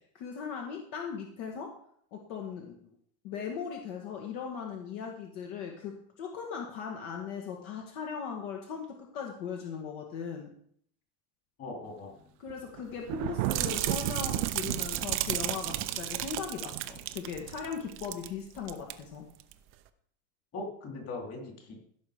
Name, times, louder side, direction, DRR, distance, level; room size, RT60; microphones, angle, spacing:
voice 1, 0.0-1.7 2.1-2.9 3.2-10.5 12.4-19.3, left 6 dB, 55° left, 1 dB, 2.1 m, -38 dB
voice 2, 11.6-12.3 20.5-21.9, left 2 dB, 30° left, 1 dB, 3.4 m, -40 dB
Thunder, 12.5-17.9, right 16 dB, 65° right, 0.7 m, -36 dB
sound 1, 13.4-18.3 18.6-18.9 19.4-19.5, right 14 dB, 25° right, 0.5 m, -34 dB
16.0 x 6.2 x 5.1 m, 0.64 s
supercardioid pair, 160°, 50 cm